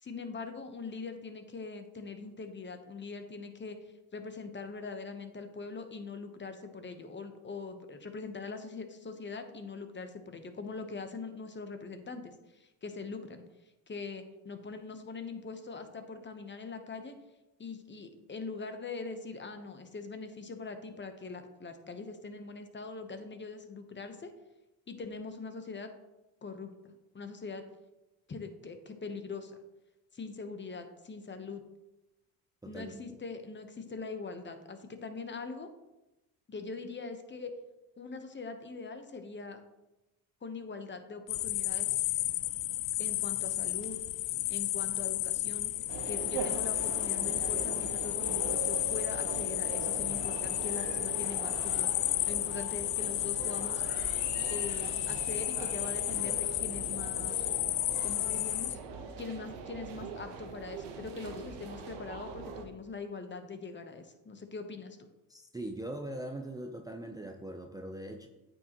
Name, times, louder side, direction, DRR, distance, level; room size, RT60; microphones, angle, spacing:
voice 1, 0.0-3.8 4.1-13.4 13.9-17.1 17.6-24.3 24.9-25.9 26.4-27.6 28.3-29.5 30.1-31.6 32.6-35.7 36.5-37.5 38.0-39.6 40.4-42.0 43.0-44.0 44.5-45.7 46.1-51.9 52.3-53.8 54.5-57.5 58.0-58.8 59.2-65.0, left 4 dB, 25° left, 7 dB, 1.0 m, -42 dB
voice 2, 32.6-32.9 65.3-68.3, right 1 dB, 10° right, 4 dB, 0.6 m, -41 dB
sound 1, 41.3-58.8, left 16 dB, 80° left, 0.6 m, -32 dB
sound 2, 45.9-62.7, right 5 dB, 85° right, 1.1 m, -42 dB
8.7 x 6.4 x 3.0 m, 0.99 s
supercardioid pair, 80°, 40 cm